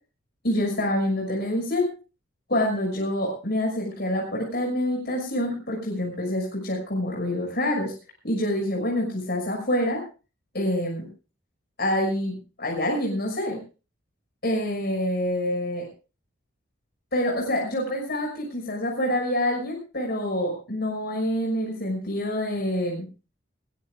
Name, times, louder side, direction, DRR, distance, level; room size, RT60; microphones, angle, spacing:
voice 1, 0.4-1.9 2.5-7.9 8.2-10.0 10.5-11.1 11.8-13.6 14.4-15.9 17.1-23.0, left 1 dB, 50° left, -1 dB, 6.0 m, -26 dB
21.5 x 19.5 x 2.4 m, 0.35 s
head